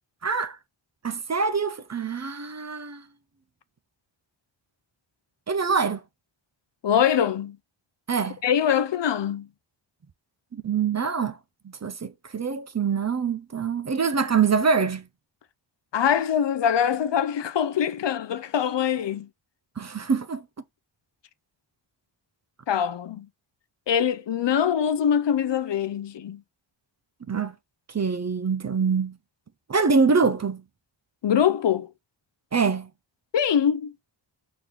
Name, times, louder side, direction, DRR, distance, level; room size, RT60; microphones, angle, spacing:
voice 1, 0.2-0.6 1.0-3.0 5.5-6.0 8.1-8.4 10.5-11.4 11.8-15.0 19.8-20.4 27.3-27.5 27.9-29.2 29.7-30.6 32.5-32.9, right 5 dB, 35° right, 0.5 m, -24 dB
voice 2, 6.8-7.6 8.4-9.5 15.9-19.3 22.7-23.3 23.9-26.4 31.2-31.9 33.3-33.9, left 8 dB, 65° left, 0.6 m, -23 dB
4.6 x 3.7 x 3.0 m
cardioid pair, 40°, 46 cm